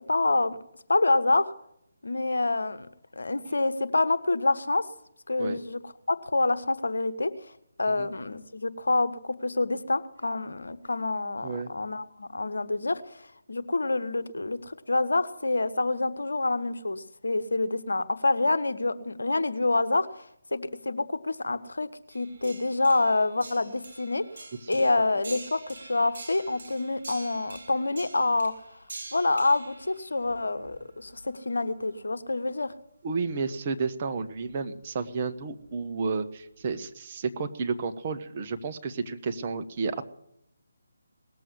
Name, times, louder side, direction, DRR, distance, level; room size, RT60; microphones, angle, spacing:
voice 1, 0.1-0.6 0.9-1.5 2.0-2.9 3.1-4.8 5.3-7.5 7.8-20.2 20.5-21.9 22.1-28.8 29.1-32.7, left 2 dB, 70° left, 14 dB, 1.2 m, -27 dB
sound 1, 22.1-31.3 33.4-33.5 34.3-34.5 35.7-36.1 36.7-36.8, right 3 dB, 55° right, 4.0 m, -46 dB
voice 2, 33.0-40.0, right 4 dB, 30° right, 6 dB, 1.1 m, -31 dB
19.0 x 7.7 x 9.8 m, 0.76 s
figure-of-eight pair, 150°, 0 cm